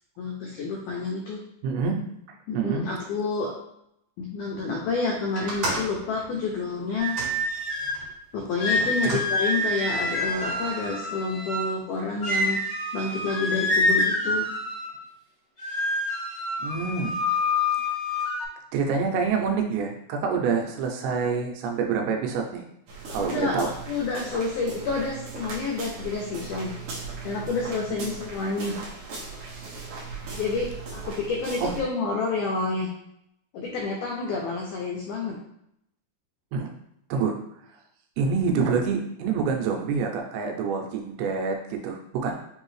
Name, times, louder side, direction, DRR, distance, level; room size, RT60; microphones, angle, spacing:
voice 1, 0.2-1.4 2.5-3.5 4.2-7.1 8.3-12.6 12.9-14.5 23.2-26.7 27.2-28.8 30.3-32.9 33.5-35.4, left 4 dB, 90° left, -1 dB, 1.8 m, -29 dB
voice 2, 1.6-2.0 2.5-2.9 9.0-9.2 16.6-17.2 18.7-22.6 23.1-23.7 27.9-28.1 31.6-31.7 36.5-36.7 37.1-37.4 38.2-42.4, right 5 dB, 85° right, 2 dB, 2.6 m, -27 dB
sound 1, 5.3-8.1 8.7-9.3 10.1-10.7, right 1 dB, 50° right, 2.4 m, -35 dB
sound 2, 7.0-8.0 8.6-11.7 12.2-15.0 15.6-18.4, left 2 dB, 50° left, 1.2 m, -27 dB
sound 3, 22.9-31.8, right 4 dB, 70° right, 1.9 m, -38 dB
5.9 x 2.7 x 3.1 m, 0.76 s
omnidirectional pair, 4.4 m